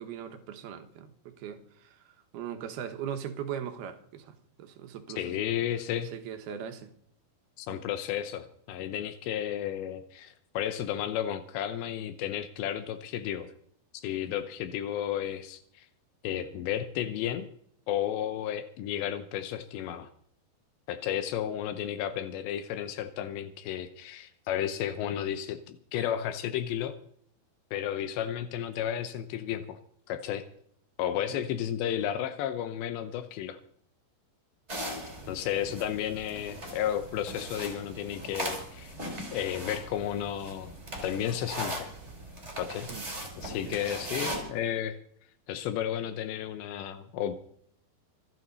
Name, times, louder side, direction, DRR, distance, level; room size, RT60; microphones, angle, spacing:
voice 1, 0.0-2.0 2.3-5.4 6.1-6.9 7.7-7.8 31.3-31.4 42.9-43.1 43.7-43.8 44.2-44.4, right 9 dB, 70° right, 3.0 m, -40 dB
voice 2, 5.2-6.1 7.6-13.5 13.9-15.9 16.2-17.5 17.9-20.1 20.9-26.9 27.7-29.8 30.1-30.4 31.0-33.6 35.3-38.9 39.3-40.7 41.0-41.9 42.6-42.9 43.4-45.0 45.5-47.4, left 10 dB, 80° left, 3.1 m, -33 dB
sound 1, 34.7-44.4, equal, 15° right, 4.0 m, -39 dB
26.5 x 9.2 x 4.1 m
omnidirectional pair, 5.0 m